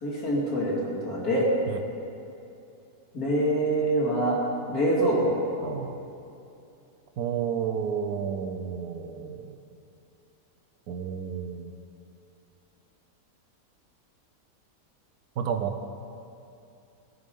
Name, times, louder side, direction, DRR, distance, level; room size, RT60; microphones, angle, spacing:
voice 1, 0.0-1.4 3.1-4.4 4.7-5.3, right 1 dB, 75° left, -4 dB, 2.7 m, -25 dB
voice 2, 5.6-6.0 7.2-9.6 10.9-11.7 15.4-15.8, right 7 dB, 90° right, 7 dB, 1.2 m, -31 dB
17.0 x 8.4 x 3.7 m, 2.7 s
omnidirectional pair, 1.6 m